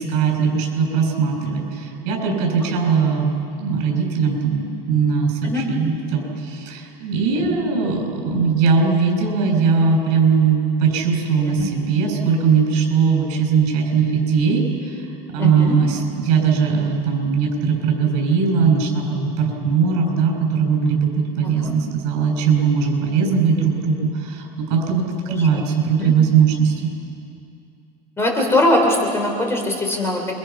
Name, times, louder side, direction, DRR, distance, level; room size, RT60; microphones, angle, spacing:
voice 1, 0.0-26.9, right 5 dB, 75° right, 2 dB, 7.4 m, -20 dB
voice 2, 15.4-15.8 21.4-21.7 25.4-25.6 26.0-26.1 28.2-30.4, left 1 dB, 15° left, 1 dB, 3.1 m, -21 dB
29.0 x 24.0 x 6.0 m, 2.6 s
cardioid pair, 170°, 20 cm